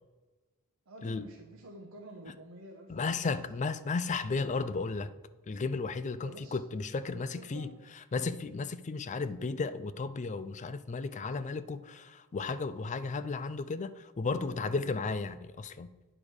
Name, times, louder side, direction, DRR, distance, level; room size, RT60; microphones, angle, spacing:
voice 1, 0.9-3.4 6.2-6.6 7.1-7.7 14.5-14.9, right 1 dB, 65° right, 1.1 m, -50 dB
voice 2, 2.9-5.1 5.5-7.7 8.1-15.9, left 4 dB, 35° left, 0.4 m, -34 dB
8.9 x 5.0 x 6.3 m
head